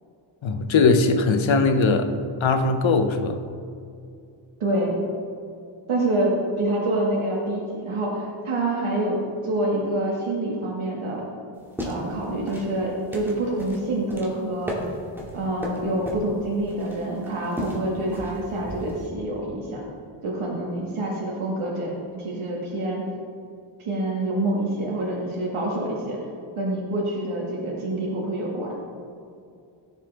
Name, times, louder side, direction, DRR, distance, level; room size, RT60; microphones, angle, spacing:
voice 1, 0.4-2.1 2.4-3.4, left 4 dB, 70° left, 7 dB, 1.0 m, -20 dB
voice 2, 4.6-5.0 5.9-9.2 9.4-11.3 11.8-14.7 15.3-19.8 20.2-23.0 23.8-26.2 26.6-28.8, right 1 dB, 85° right, -3 dB, 1.9 m, -26 dB
sound 1, 11.5-19.1, equal, 5° right, 2.3 m, -36 dB
17.0 x 7.3 x 3.5 m, 2.4 s
wide cardioid pair, 115°, 49 cm